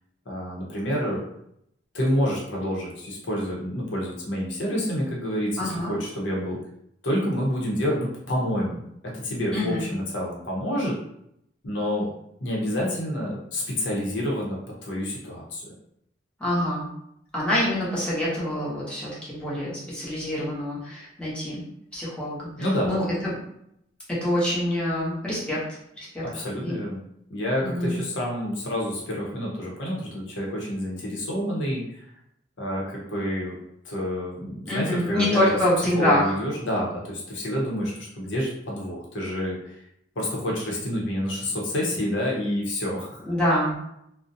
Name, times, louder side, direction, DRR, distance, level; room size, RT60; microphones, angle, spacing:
voice 1, 0.3-1.2 1.9-6.6 7.0-11.0 11.6-12.1 12.4-15.7 22.6-23.1 26.2-27.0 27.3-32.0 32.6-33.6 33.8-39.8 40.2-43.2, equal, 80° left, -3 dB, 0.7 m, -28 dB
voice 2, 5.6-5.9 9.5-9.9 16.4-16.9 17.3-21.6 21.9-22.5 22.8-23.0 24.1-25.6 26.0-26.2 26.6-26.8 27.6-28.0 34.7-36.3 43.3-43.8, left 1 dB, 5° left, -8 dB, 0.8 m, -25 dB
2.4 x 2.0 x 2.6 m, 0.75 s
head